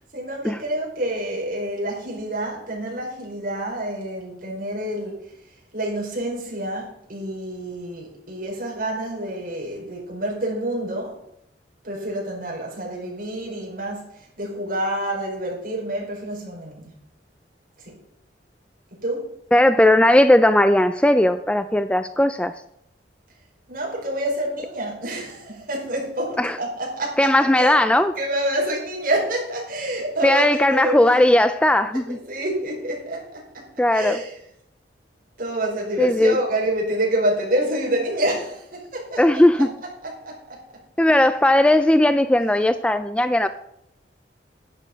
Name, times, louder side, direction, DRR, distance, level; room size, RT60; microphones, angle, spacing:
voice 1, 0.1-11.2 11.8-16.9 17.8-17.9 19.0-19.3 23.7-27.8 28.2-31.2 32.1-33.7 33.9-34.4 35.4-39.7 40.0-40.6, right 1 dB, 55° right, -2 dB, 4.7 m, -28 dB
voice 2, 19.5-22.5 26.4-26.5 27.2-28.1 30.2-32.2 33.8-34.2 36.0-36.4 39.2-39.7 41.0-43.5, left 1 dB, 5° left, 11 dB, 0.4 m, -17 dB
11.0 x 10.5 x 5.1 m, 0.75 s
head